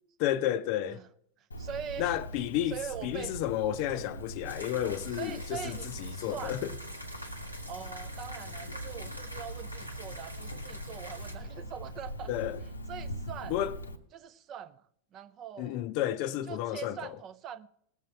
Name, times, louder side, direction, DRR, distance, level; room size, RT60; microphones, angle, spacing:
voice 1, 0.2-1.0 2.0-6.8 12.3-12.6 13.5-13.8 15.6-17.1, left 12 dB, 45° left, 0.5 m, -32 dB
Cricket, 1.5-14.0, equal, 75° left, 0.7 m, -42 dB
voice 2, 1.6-2.2 2.7-3.4 3.9-4.0 5.1-6.6 7.7-12.3 12.9-13.6 14.1-14.8 15.1-15.8 16.5-17.7, right 9 dB, 30° right, 0.5 m, -42 dB
sound 1, 4.4-11.4, equal, 90° right, 1.7 m, -46 dB
19.0 x 7.4 x 4.4 m
figure-of-eight pair, 90°, 0 cm